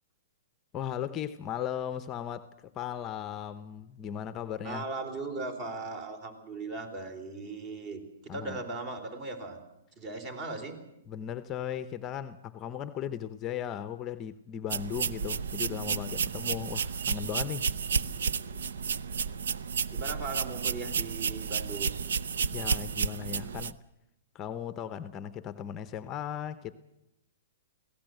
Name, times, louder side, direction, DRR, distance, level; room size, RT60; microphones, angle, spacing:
voice 1, 0.7-4.8 8.3-8.6 11.1-17.7 22.5-23.8 24.3-26.7, left 9 dB, 25° left, 0.7 m, -37 dB
voice 2, 4.6-9.6 10.0-10.8 19.9-22.0, right 3 dB, 35° right, 3.9 m, -38 dB
sound 1, 14.7-23.7, right 6 dB, 80° right, 0.8 m, -32 dB
23.0 x 17.0 x 7.8 m
hypercardioid pair, 150°, 0 cm